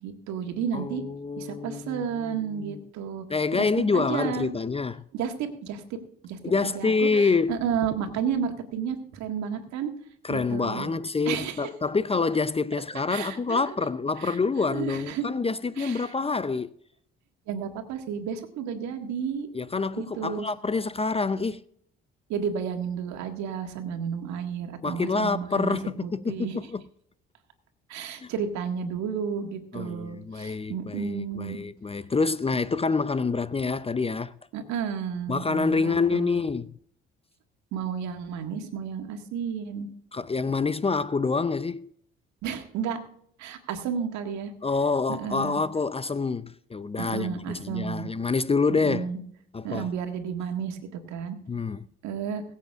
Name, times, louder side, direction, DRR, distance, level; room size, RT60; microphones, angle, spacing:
voice 1, 0.0-1.0 1.4-3.3 3.5-4.5 5.1-6.0 6.2-9.9 10.3-10.9 11.3-11.7 13.1-13.6 14.2-14.4 14.7-15.2 15.8-16.1 17.5-19.5 20.0-20.4 22.3-26.6 27.9-31.6 34.5-36.4 37.7-39.9 42.4-43.0 43.4-44.5 45.1-45.6 47.0-48.1 48.7-49.2 49.6-50.8 51.1-51.4 52.0-52.4, right 7 dB, 70° right, 1.8 m, -32 dB
voice 2, 0.7-2.8 3.3-5.0 6.4-7.6 10.2-16.7 19.5-21.6 24.8-26.8 28.2-28.3 29.7-34.3 35.3-36.7 40.1-41.9 44.6-49.1 49.5-49.9 51.5-51.9, left 4 dB, 20° left, 0.5 m, -27 dB
22.0 x 8.4 x 2.5 m
hypercardioid pair, 50°, 29 cm